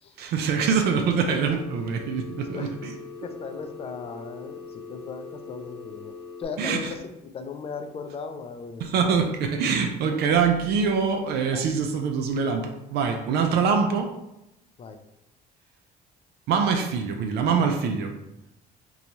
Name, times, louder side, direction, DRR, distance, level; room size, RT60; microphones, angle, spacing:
voice 1, 0.2-3.0 4.1-4.2 6.6-6.9 8.8-14.1 16.5-18.1, right 5 dB, 70° right, 4 dB, 0.4 m, -24 dB
Telephone, 1.4-6.4, left 4 dB, 65° left, 0.8 m, -41 dB
voice 2, 2.4-9.0 11.5-11.7 14.8-15.0, left 4 dB, 35° left, 7 dB, 0.4 m, -38 dB
2.9 x 2.3 x 4.0 m, 0.90 s
cardioid pair, 110°, 17 cm